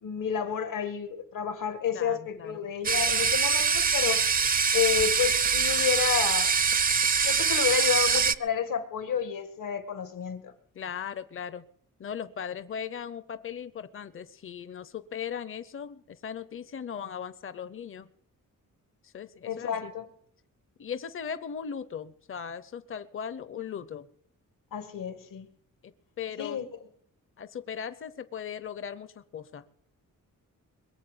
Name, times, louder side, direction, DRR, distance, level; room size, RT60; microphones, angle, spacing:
voice 1, 0.0-4.2 4.7-6.5 7.2-10.5 19.4-20.1 24.7-25.5 26.4-26.7, left 7 dB, 75° left, 1.9 m, -30 dB
voice 2, 1.9-2.7 10.7-11.7 12.0-18.1 19.0-19.9 20.8-24.1 26.2-26.6 27.4-29.6, left 7 dB, 40° left, 0.7 m, -38 dB
sound 1, 2.8-8.3, right 6 dB, 25° right, 0.5 m, -24 dB
22.0 x 7.5 x 7.9 m
wide cardioid pair, 135°, 32 cm